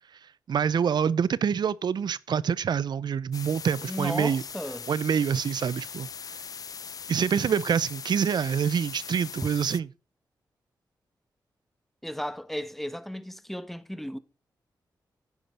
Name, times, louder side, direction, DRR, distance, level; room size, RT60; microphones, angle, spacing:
voice 1, 0.5-4.4 4.9-6.1 7.1-9.9, right 7 dB, 70° right, 0.5 m, -26 dB
sound 1, 3.3-9.8, left 6 dB, 55° left, 0.4 m, -40 dB
voice 2, 3.8-4.8 12.0-14.2, equal, 5° left, 1.1 m, -34 dB
10.5 x 10.0 x 3.3 m
cardioid pair, 55°, 8 cm